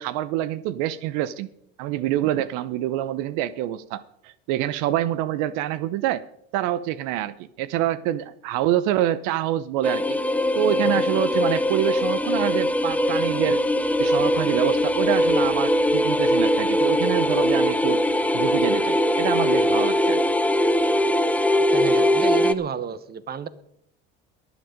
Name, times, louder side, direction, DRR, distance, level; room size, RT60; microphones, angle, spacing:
voice 1, 0.0-1.5 1.8-6.2 6.5-10.2 10.5-13.6 14.0-18.0 18.3-20.2, right 12 dB, 75° right, 16 dB, 0.8 m, -26 dB
sound 1, 9.8-22.5, left 1 dB, 5° left, 0.8 m, -21 dB
voice 2, 21.7-23.5, right 7 dB, 30° right, 15 dB, 1.1 m, -31 dB
22.5 x 8.1 x 5.1 m, 0.72 s
supercardioid pair, 100°, 31 cm